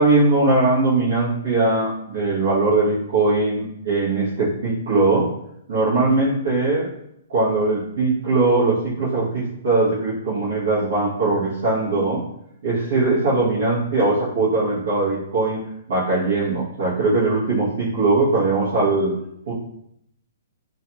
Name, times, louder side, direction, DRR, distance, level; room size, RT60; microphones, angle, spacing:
voice 1, 0.0-5.3 5.7-6.9 7.3-12.2 12.6-15.6 15.9-19.1 19.5-19.6, right 3 dB, 70° right, -9 dB, 0.9 m, -20 dB
2.5 x 2.3 x 2.7 m, 0.74 s
hypercardioid pair, 170°, 0 cm